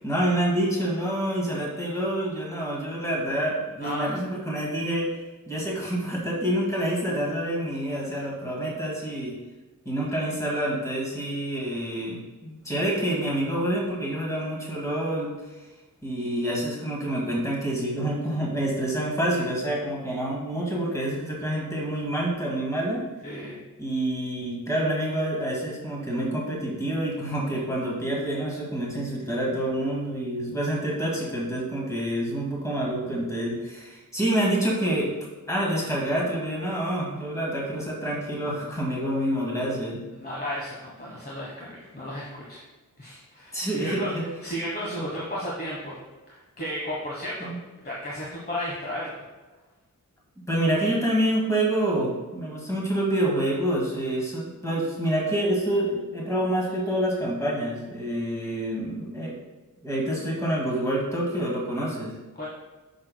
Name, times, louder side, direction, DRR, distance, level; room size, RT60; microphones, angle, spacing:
voice 1, 0.0-5.1 5.5-9.3 9.9-15.3 16.0-23.0 23.8-35.1 35.5-40.0 43.5-44.3 47.4-47.6 50.5-59.4 59.8-62.1, right 1 dB, 10° left, -4 dB, 2.0 m, -27 dB
voice 2, 3.8-4.1 23.2-23.6 40.1-42.6 43.0-44.1 44.4-46.0 46.3-47.5 47.8-49.1 62.3-62.5, equal, 30° left, -6 dB, 1.3 m, -33 dB
9.3 x 6.4 x 2.2 m, 1.2 s
wide cardioid pair, 160°, 33 cm